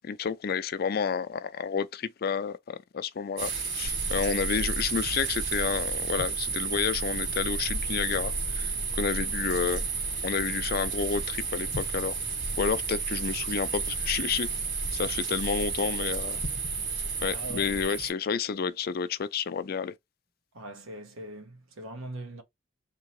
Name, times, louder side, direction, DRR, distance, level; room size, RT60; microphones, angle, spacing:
voice 1, 0.0-9.8 10.2-12.2 12.6-14.5 14.9-16.4 17.2-19.9, left 6 dB, 50° left, 0.4 m, -30 dB
sound 1, 3.4-18.1, right 5 dB, 55° right, 2.3 m, -32 dB
sound 2, 3.8-17.8, equal, 10° right, 0.6 m, -39 dB
voice 2, 17.3-17.7 20.5-22.4, right 1 dB, 85° right, 1.1 m, -41 dB
3.7 x 2.8 x 3.1 m
head